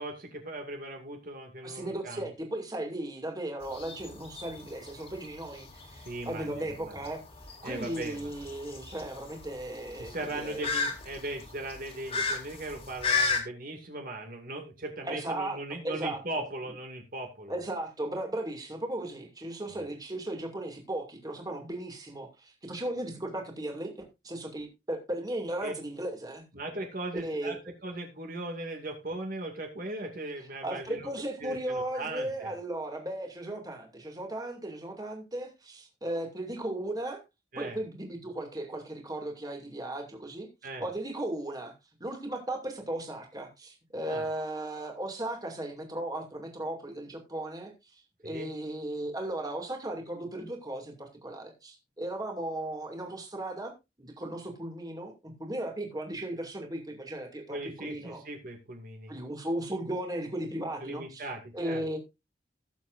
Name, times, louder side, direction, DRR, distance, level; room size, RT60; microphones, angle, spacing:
voice 1, 0.0-2.3 6.1-7.0 7.6-8.3 10.0-17.6 25.6-25.7 26.5-31.1 31.4-32.5 37.5-37.8 40.6-40.8 44.1-44.2 48.2-48.5 57.5-59.1 60.8-61.8, right 2 dB, 50° right, 3 dB, 2.3 m, -38 dB
voice 2, 1.6-7.2 7.6-10.7 15.0-15.6 15.8-16.2 17.5-26.4 27.1-27.6 30.6-37.2 37.6-40.5 40.8-41.7 42.0-53.7 54.0-58.2 59.1-61.3 61.5-62.0, right 1 dB, 20° right, 3 dB, 2.4 m, -36 dB
sound 1, 3.6-13.4, left 4 dB, 35° left, 2.5 m, -34 dB
18.0 x 7.3 x 2.6 m, 0.24 s
head